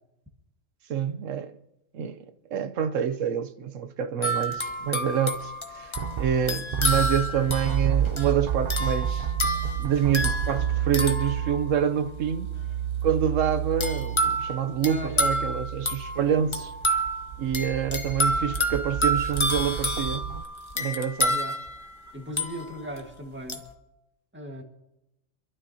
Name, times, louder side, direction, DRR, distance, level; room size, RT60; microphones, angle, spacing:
voice 1, 0.9-1.5 1.9-2.2 2.5-9.3 9.8-12.5 13.0-16.7 17.4-20.3 20.8-21.4, right 8 dB, 80° right, 1.1 m, -27 dB
sound 1, 4.2-12.1 13.8-23.0 23.5-23.7, equal, 25° left, 1.0 m, -29 dB
sound 2, 5.9-20.4, right 9 dB, 60° right, 0.4 m, -31 dB
voice 2, 14.8-15.4 16.2-16.4 21.3-21.5 22.1-23.6 24.3-24.6, equal, 10° right, 1.7 m, -38 dB
26.5 x 12.0 x 2.8 m
omnidirectional pair, 1.3 m